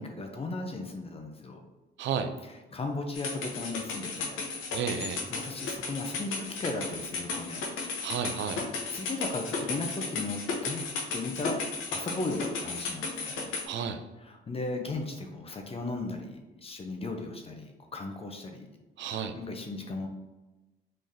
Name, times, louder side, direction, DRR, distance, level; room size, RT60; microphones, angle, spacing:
voice 1, 0.0-1.6 2.7-4.4 5.3-7.6 8.4-8.5 8.9-10.8 11.1-13.4 14.2-18.8 19.3-20.1, left 2 dB, 30° left, 3 dB, 0.5 m, -36 dB
voice 2, 2.0-2.3 4.7-5.2 8.0-8.6 13.7-14.0 19.0-19.3, right 7 dB, 70° right, 8 dB, 0.4 m, -32 dB
sound 1, 3.1-13.6, left 4 dB, 90° left, 0.7 m, -34 dB
3.7 x 3.2 x 2.7 m, 1.1 s
cardioid pair, 90°, 20 cm